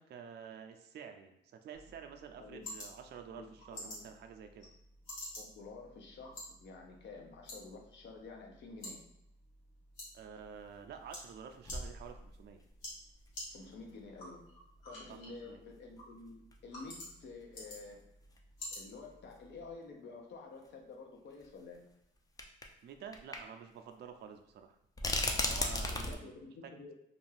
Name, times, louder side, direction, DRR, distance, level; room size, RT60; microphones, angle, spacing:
voice 1, 0.0-4.7 10.1-12.6 15.1-15.2 15.4-15.6 22.8-24.8 25.2-26.3 26.6-26.8, right 7 dB, 55° right, 6 dB, 0.4 m, -49 dB
sound 1, 1.7-19.7, left 1 dB, 80° left, 1.3 m, -51 dB
voice 2, 3.3-4.1 5.4-9.0 13.5-14.5 14.8-18.1 18.7-21.8 25.9-26.9, left 3 dB, 65° left, 1 dB, 0.7 m, -50 dB
sound 2, 10.4-10.5 11.3-11.4 11.6-12.6 13.3-13.4 15.1-15.2 16.5-16.6 16.8-16.9 17.9-18.0 18.3-18.4 19.8-19.9 21.4-21.5 22.4-22.7 23.1-23.4 23.7-23.8 25.0-26.1, left 2 dB, 20° left, 0.4 m, -35 dB
2.5 x 2.3 x 3.2 m, 0.82 s
cardioid pair, 90°, 20 cm